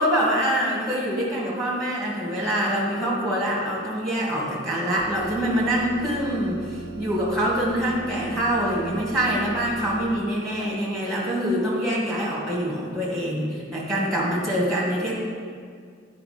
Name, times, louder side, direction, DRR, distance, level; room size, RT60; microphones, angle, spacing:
voice 1, 0.0-15.1, equal, ahead, -5 dB, 1.7 m, -25 dB
sound 1, 5.0-10.2, right 3 dB, 70° right, 0.6 m, -39 dB
10.5 x 4.9 x 5.0 m, 2.1 s
head